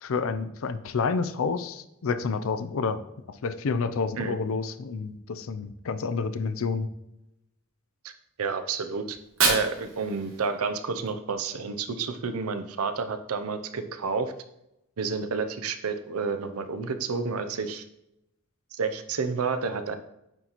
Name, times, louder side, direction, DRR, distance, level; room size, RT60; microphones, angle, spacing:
voice 1, 0.0-3.0 3.4-6.9, left 4 dB, 65° left, 11 dB, 0.5 m, -29 dB
voice 2, 8.4-9.2 9.4-14.3 15.0-17.8 18.7-20.0, right 5 dB, 90° right, 9 dB, 0.6 m, -30 dB
Fire, 9.1-11.1, right 4 dB, 70° right, 1.5 m, -29 dB
8.9 x 4.0 x 3.0 m, 0.87 s
head